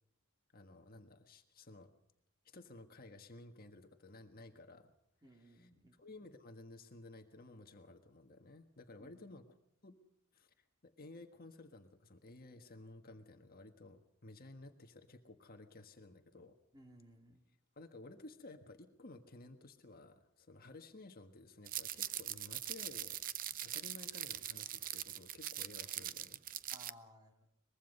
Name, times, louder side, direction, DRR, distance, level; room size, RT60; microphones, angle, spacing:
voice 1, 0.5-1.9 2.4-4.9 5.4-5.7 6.0-9.4 9.8-10.0 10.3-10.5 10.8-16.6 17.8-23.2 23.6-26.4, left 2 dB, 45° left, 6 dB, 1.6 m, -55 dB
voice 2, 5.2-6.0 9.0-9.3 16.7-17.4 26.7-27.5, equal, 20° right, 3 dB, 2.9 m, -60 dB
sound 1, 21.7-26.9, right 12 dB, 40° right, 0.7 m, -42 dB
23.5 x 22.0 x 5.5 m, 0.78 s
head